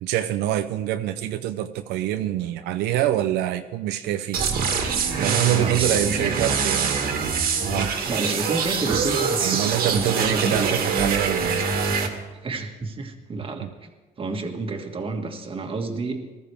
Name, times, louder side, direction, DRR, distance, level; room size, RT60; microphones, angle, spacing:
voice 1, 0.0-4.4 5.2-7.0 7.6-7.9 9.4-11.7 13.6-13.7, right 12 dB, 85° right, 7 dB, 0.6 m, -25 dB
sound 1, 4.3-12.1, right 5 dB, 60° right, 1.9 m, -24 dB
voice 2, 5.6-6.6 8.1-10.8 12.4-13.9 14.2-16.4, right 3 dB, 30° right, 4 dB, 1.7 m, -30 dB
19.5 x 14.0 x 3.4 m, 1.2 s
cardioid pair, 110°, 17 cm